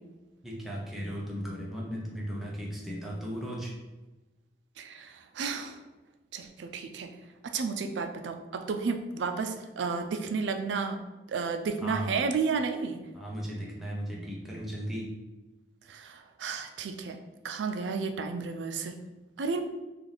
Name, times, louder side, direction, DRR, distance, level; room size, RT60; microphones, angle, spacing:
voice 1, 0.4-3.7 11.8-12.1 13.1-15.1, equal, ahead, -5 dB, 0.6 m, -36 dB
voice 2, 4.8-5.8 6.3-7.1 7.4-11.0 11.3-13.1 15.9-19.0 19.4-19.6, right 5 dB, 85° right, 7 dB, 0.4 m, -32 dB
3.4 x 2.5 x 3.9 m, 1.1 s
head